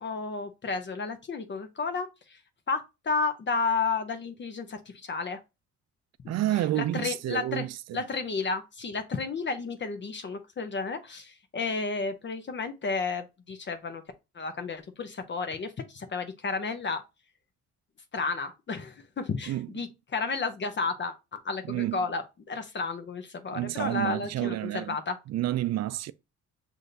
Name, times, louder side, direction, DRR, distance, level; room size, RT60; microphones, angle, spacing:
voice 1, 0.0-2.4 2.7-5.4 6.7-7.7 7.9-14.0 14.3-17.0 18.1-25.2, left 4 dB, 40° left, 0.7 m, -32 dB
voice 2, 6.3-8.0 19.5-19.7 21.6-22.0 23.5-25.0 25.3-26.1, right 14 dB, 60° right, 0.4 m, -29 dB
6.1 x 2.7 x 2.6 m
cardioid pair, 90°, 30 cm